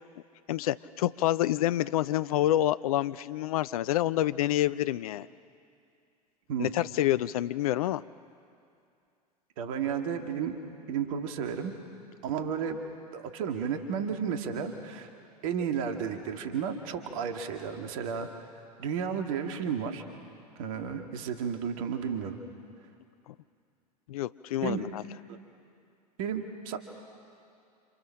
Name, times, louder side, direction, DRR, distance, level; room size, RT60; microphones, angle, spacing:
voice 1, 0.5-5.3 6.6-8.0 24.1-25.0, left 13 dB, 65° left, 16 dB, 0.6 m, -27 dB
voice 2, 9.6-10.6 10.9-11.7 12.2-12.8 13.1-15.1 15.4-18.3 18.8-20.0 20.6-22.4 24.6-24.9 25.3-25.4 26.2-26.8, right 7 dB, 55° right, 5 dB, 2.0 m, -32 dB
29.0 x 27.5 x 6.4 m, 2.5 s
figure-of-eight pair, 85°, 20 cm